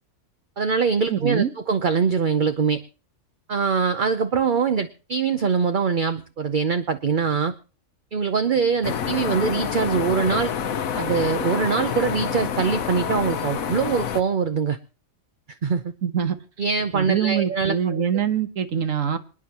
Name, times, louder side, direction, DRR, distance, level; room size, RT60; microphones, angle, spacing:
voice 1, 0.6-2.8 3.5-7.5 8.1-10.5 11.0-14.8 15.6-15.9 16.6-18.1, right 5 dB, 45° right, 9 dB, 0.8 m, -23 dB
voice 2, 1.1-1.5 16.0-16.4 16.9-19.2, right 8 dB, 70° right, 10 dB, 1.4 m, -24 dB
sound 1, 8.8-14.2, left 7 dB, 75° left, 1.3 m, -27 dB
27.0 x 9.7 x 2.9 m, 0.35 s
omnidirectional pair, 1.5 m